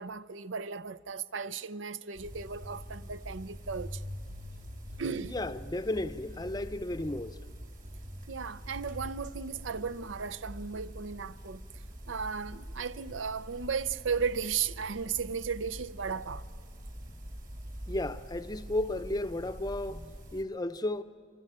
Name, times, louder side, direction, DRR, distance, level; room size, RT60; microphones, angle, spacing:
voice 1, 0.0-4.0 5.0-5.4 8.3-11.6 12.1-16.5, right 6 dB, 80° right, 0.6 m, -35 dB
sound 1, 2.1-20.4, equal, 45° right, 2.6 m, -44 dB
voice 2, 5.2-7.4 17.9-21.0, left 1 dB, 20° left, 0.6 m, -34 dB
26.0 x 25.5 x 8.8 m
head